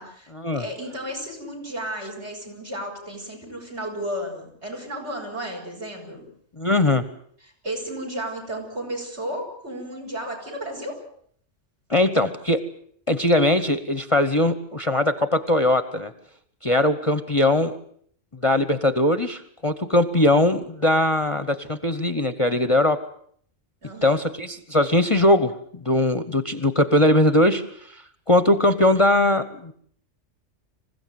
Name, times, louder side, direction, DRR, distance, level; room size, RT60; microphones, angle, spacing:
voice 1, 0.0-0.3 0.6-6.3 7.4-11.0 23.8-24.2, right 1 dB, 60° right, 4 dB, 7.9 m, -33 dB
voice 2, 6.6-7.0 11.9-12.6 13.1-16.1 16.6-17.8 18.4-23.0 24.0-25.5 25.8-27.6 27.9-28.0 28.3-29.7, left 1 dB, 25° left, 11 dB, 1.1 m, -20 dB
26.5 x 16.0 x 9.4 m, 0.63 s
omnidirectional pair, 1.3 m